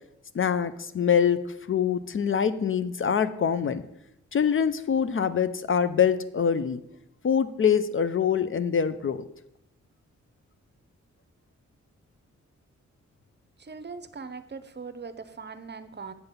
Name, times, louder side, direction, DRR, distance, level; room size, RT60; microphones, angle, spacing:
voice 1, 0.3-1.4 1.7-3.8 4.3-6.8 7.2-9.2, left 7 dB, 45° left, 13 dB, 0.5 m, -24 dB
voice 2, 13.6-16.1, right 5 dB, 35° right, 11 dB, 0.7 m, -40 dB
8.1 x 3.9 x 6.7 m, 0.84 s
cardioid pair, 65°, 30 cm